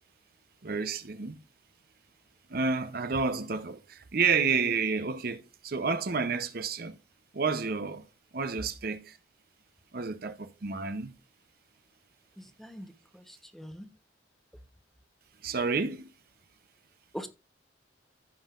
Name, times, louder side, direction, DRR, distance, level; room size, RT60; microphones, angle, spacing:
voice 1, 0.6-1.4 2.5-7.0 7.3-8.0 8.3-9.2 9.9-11.1 15.4-16.1, right 5 dB, 50° right, 0.7 m, -30 dB
voice 2, 12.4-13.9 17.1-17.3, equal, ahead, 0.9 m, -43 dB
15.5 x 5.4 x 2.4 m
head